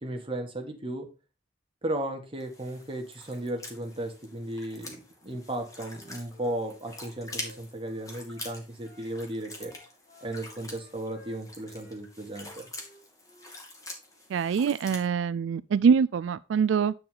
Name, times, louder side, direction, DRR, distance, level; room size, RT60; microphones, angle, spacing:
voice 1, 0.0-1.1 1.8-9.7 10.2-12.7, right 1 dB, 30° right, 1.8 m, -35 dB
sound 1, 2.4-15.1, left 2 dB, 20° left, 2.1 m, -45 dB
Wind instrument woodwind instrument, 5.4-9.1 9.5-12.0 12.3-13.6, left 2 dB, 55° left, 5.0 m, -55 dB
voice 2, 14.3-16.9, right 6 dB, 85° right, 0.3 m, -24 dB
9.3 x 4.7 x 4.9 m
head